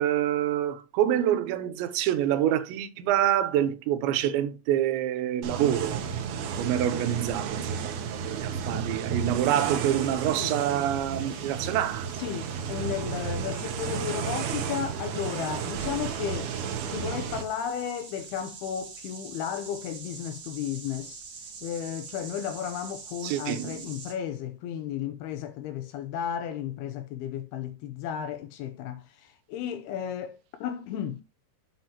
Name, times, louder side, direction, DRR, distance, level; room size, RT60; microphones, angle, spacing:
voice 1, 0.0-6.0 6.6-12.2 23.2-23.8, right 11 dB, 90° right, 3.1 m, -26 dB
sound 1, 5.4-17.4, right 7 dB, 70° right, 2.8 m, -33 dB
sound 2, 10.2-24.1, right 5 dB, 50° right, 1.5 m, -47 dB
voice 2, 12.2-21.2 21.6-31.2, left 9 dB, 85° left, 2.4 m, -34 dB
7.8 x 7.3 x 2.9 m
omnidirectional pair, 5.1 m